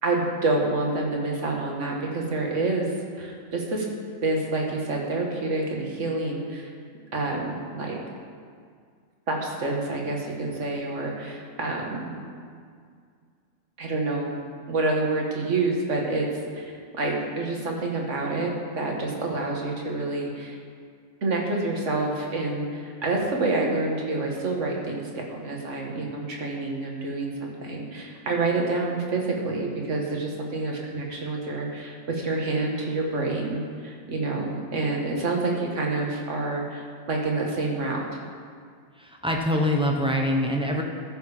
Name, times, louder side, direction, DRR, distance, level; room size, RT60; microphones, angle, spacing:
voice 1, 0.0-2.9 3.2-3.9 4.2-6.7 7.1-8.0 9.3-12.2 13.8-14.3 14.7-16.3 16.6-18.5 18.8-20.6 21.2-38.0, right 2 dB, 60° right, -1 dB, 1.8 m, -28 dB
voice 2, 39.0-40.8, equal, 5° right, 0 dB, 0.9 m, -24 dB
13.5 x 6.9 x 4.9 m, 2.1 s
omnidirectional pair, 1.4 m